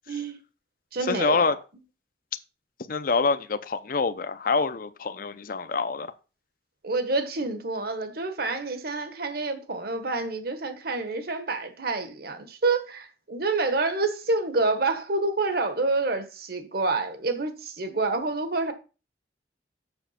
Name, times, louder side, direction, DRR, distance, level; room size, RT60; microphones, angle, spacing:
voice 1, 0.1-0.4 0.9-1.5 6.8-18.7, right 3 dB, 55° right, 1.4 m, -28 dB
voice 2, 1.0-1.6 2.9-6.1, left 4 dB, 50° left, 0.6 m, -26 dB
7.1 x 6.4 x 5.8 m
head